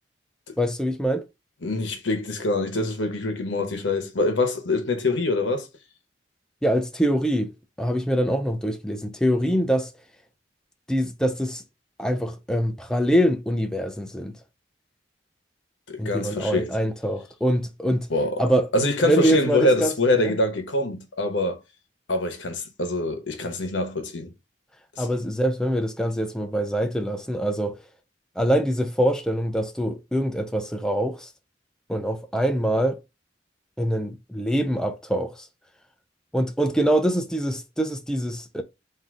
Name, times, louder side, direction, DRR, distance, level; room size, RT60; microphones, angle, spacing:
voice 1, 0.6-1.2 6.6-7.5 7.8-9.9 10.9-11.6 12.0-14.3 16.0-18.1 18.4-18.7 19.0-19.9 20.2-20.3 25.0-27.8 28.4-31.3 31.9-33.0 33.8-35.5 36.3-38.6, equal, 5° left, 0.4 m, -24 dB
voice 2, 1.6-5.7 15.9-16.7 18.1-18.4 18.7-21.6 22.1-24.3 25.0-25.1, left 2 dB, 80° left, 1.1 m, -24 dB
3.8 x 2.7 x 4.7 m
head